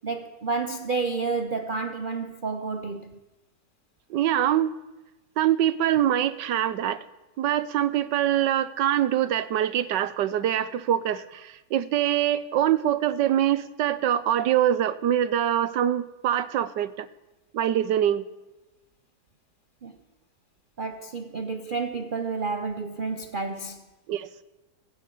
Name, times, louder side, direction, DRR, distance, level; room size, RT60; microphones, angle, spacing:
voice 1, 0.0-3.2 19.8-20.0 20.8-23.9, right 4 dB, 50° right, 0.6 m, -30 dB
voice 2, 4.1-4.7 5.4-7.0 7.4-17.1 17.5-18.3 24.1-24.3, right 11 dB, 90° right, 1.5 m, -24 dB
17.0 x 9.0 x 8.4 m
omnidirectional pair, 1.8 m